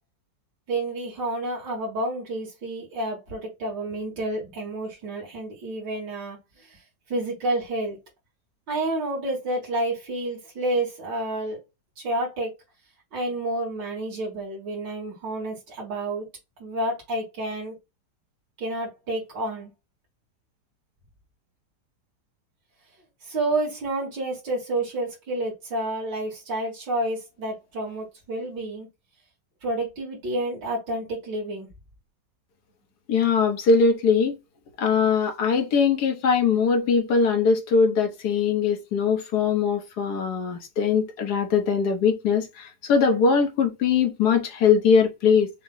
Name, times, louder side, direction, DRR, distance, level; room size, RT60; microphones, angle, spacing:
voice 1, 0.7-6.8 7.1-8.0 8.7-11.6 12.0-12.6 13.1-16.3 16.6-17.8 18.6-19.7 23.2-28.9 29.6-31.7, right 1 dB, 90° right, 2.5 m, -29 dB
voice 2, 33.1-34.4 34.8-45.5, left 5 dB, 70° left, 1.5 m, -21 dB
6.1 x 2.2 x 3.8 m
omnidirectional pair, 1.9 m